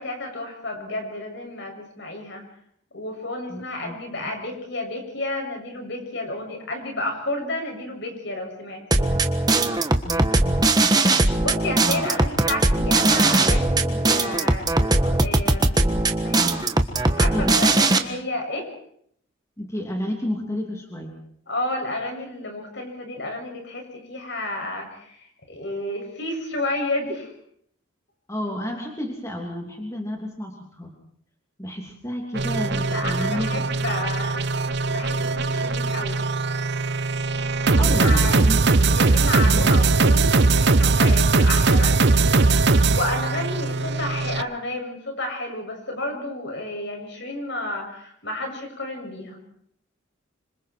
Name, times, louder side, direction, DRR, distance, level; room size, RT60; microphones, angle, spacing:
voice 1, 0.0-2.4 2.9-9.2 11.4-16.7 17.2-18.7 21.5-27.3 32.8-34.4 34.9-36.2 37.6-38.4 38.9-49.4, left 2 dB, 60° left, 2 dB, 7.2 m, -31 dB
voice 2, 3.5-4.3 10.0-11.3 17.3-17.9 19.6-21.2 28.3-30.9 31.6-33.7 37.5-40.4, equal, 15° left, 1 dB, 3.0 m, -32 dB
sound 1, 8.9-18.0, right 2 dB, 20° right, 1.4 m, -20 dB
sound 2, 32.3-44.4, right 3 dB, 55° right, 0.9 m, -20 dB
27.0 x 26.0 x 4.6 m, 0.67 s
head